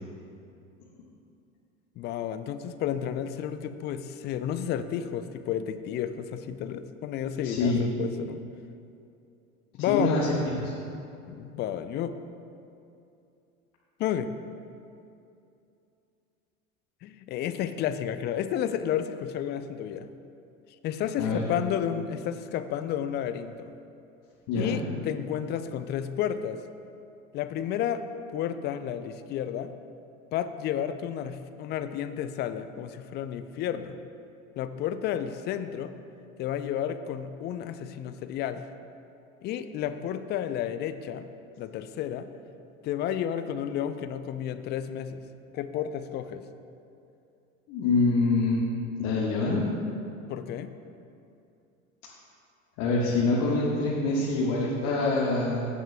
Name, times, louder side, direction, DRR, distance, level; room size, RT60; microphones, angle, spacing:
voice 1, 2.0-8.4 9.7-10.1 11.3-12.1 14.0-14.3 17.0-20.1 20.8-23.7 24.6-26.6 27.3-28.0 28.3-29.7 30.3-34.0 34.6-35.9 36.4-38.7 39.4-41.3 41.6-42.3 42.8-45.2 45.5-46.4 50.3-50.7, left 9 dB, 25° left, 11 dB, 0.4 m, -31 dB
voice 2, 7.4-7.8 9.9-10.7 21.2-21.4 24.5-24.8 47.7-48.7 49.0-49.7 52.8-55.7, left 3 dB, 50° left, -5 dB, 1.5 m, -25 dB
15.5 x 9.1 x 2.2 m, 2.6 s
figure-of-eight pair, 80°, 41 cm